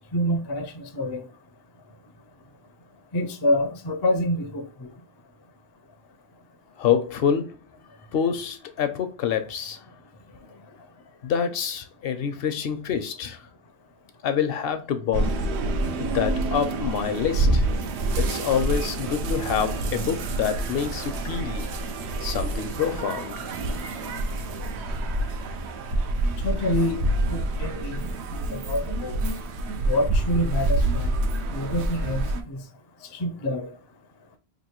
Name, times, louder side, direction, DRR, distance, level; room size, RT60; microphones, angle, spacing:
voice 1, 0.1-1.3 3.1-4.9 26.4-27.0 27.3-29.2 29.9-31.1 31.5-32.6 33.1-33.7, left 1 dB, 40° left, 0.4 m, -27 dB
voice 2, 6.8-7.6 8.1-9.9 10.5-10.6 11.2-13.5 14.2-15.4 16.0-17.7 18.2-21.7 22.2-23.5, left 8 dB, 70° left, 0.7 m, -27 dB
sound 1, 15.1-32.4, right 2 dB, 90° right, 0.9 m, -27 dB
sound 2, 19.3-20.9, right 10 dB, 45° right, 0.6 m, -43 dB
3.1 x 2.5 x 4.3 m
omnidirectional pair, 1.1 m